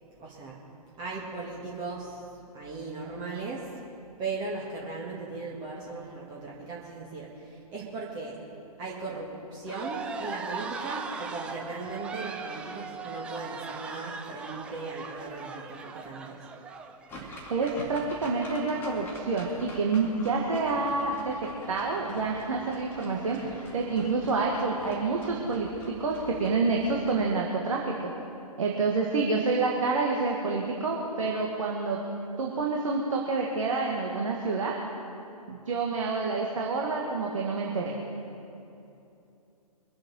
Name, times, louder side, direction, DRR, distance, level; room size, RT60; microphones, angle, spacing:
voice 1, 0.2-0.6 1.0-3.8 4.2-8.4 8.8-16.5, right 3 dB, 20° right, -4 dB, 1.8 m, -38 dB
sound 1, 9.7-17.2, right 4 dB, 5° right, 0.4 m, -39 dB
sound 2, 17.1-27.4, right 1 dB, 10° left, 2.1 m, -46 dB
voice 2, 17.5-25.7 26.0-28.1 28.6-32.0 32.4-34.8 35.5-38.0, right 3 dB, 55° right, -1 dB, 1.8 m, -28 dB
23.0 x 7.8 x 5.6 m, 2.8 s
figure-of-eight pair, 125°, 20 cm